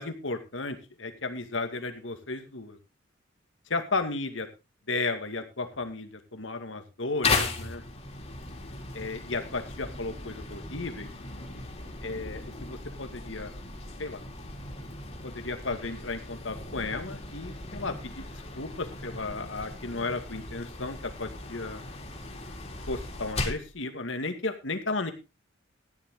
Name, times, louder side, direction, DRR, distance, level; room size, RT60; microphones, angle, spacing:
voice 1, 0.0-2.8 3.7-4.5 4.9-7.8 8.9-11.1 12.0-13.6 14.0-14.2 15.2-21.9 22.9-25.1, left 3 dB, 85° left, 7 dB, 2.1 m, -34 dB
sound 1, 7.2-23.7, left 3 dB, 35° left, 2.9 m, -36 dB
14.5 x 10.5 x 3.8 m, 0.28 s
head